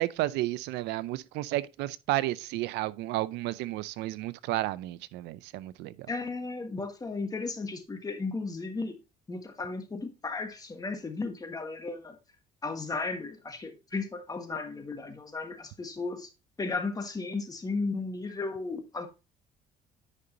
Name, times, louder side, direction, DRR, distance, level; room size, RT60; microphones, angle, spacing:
voice 1, 0.0-6.1, right 16 dB, 90° right, 0.5 m, -32 dB
voice 2, 6.1-9.0 9.3-12.2 12.6-16.3 16.6-19.1, left 3 dB, 20° left, 1.5 m, -35 dB
9.8 x 5.3 x 2.7 m
cardioid pair, 110°, 17 cm